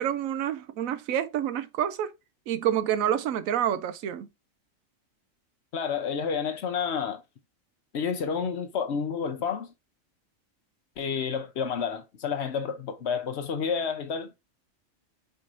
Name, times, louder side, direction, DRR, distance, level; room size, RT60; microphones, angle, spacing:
voice 1, 0.0-2.1 2.5-4.3, right 10 dB, 85° right, 1.0 m, -28 dB
voice 2, 5.7-7.2 7.9-9.7 11.0-14.3, left 6 dB, 60° left, 0.9 m, -30 dB
4.7 x 4.5 x 2.5 m
omnidirectional pair, 1.4 m